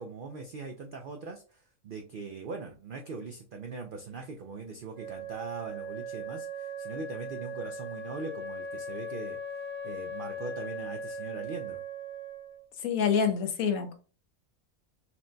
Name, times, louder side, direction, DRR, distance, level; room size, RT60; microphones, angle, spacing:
voice 1, 0.0-9.4 9.8-11.8, right 4 dB, 70° right, 0.5 m, -41 dB
Wind instrument woodwind instrument, 4.9-12.7, right 1 dB, 25° left, 0.4 m, -39 dB
voice 2, 12.8-13.9, left 6 dB, 80° left, 1.2 m, -26 dB
5.7 x 2.2 x 2.6 m
omnidirectional pair, 1.5 m